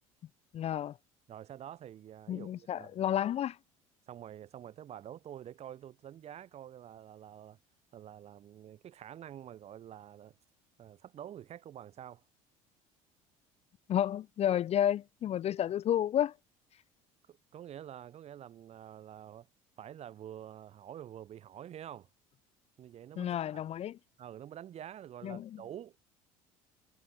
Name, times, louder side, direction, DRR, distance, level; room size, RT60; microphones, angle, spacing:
voice 1, 0.5-1.0 2.3-3.6 13.9-16.3 23.2-24.0 25.2-25.6, left 10 dB, 35° left, 0.6 m, -31 dB
voice 2, 1.3-3.1 4.1-7.6 7.9-10.4 10.8-12.2 17.3-19.5 19.8-22.1 22.8-23.7 24.2-26.0, right 10 dB, 35° right, 0.9 m, -48 dB
figure-of-eight pair, 60°, 18 cm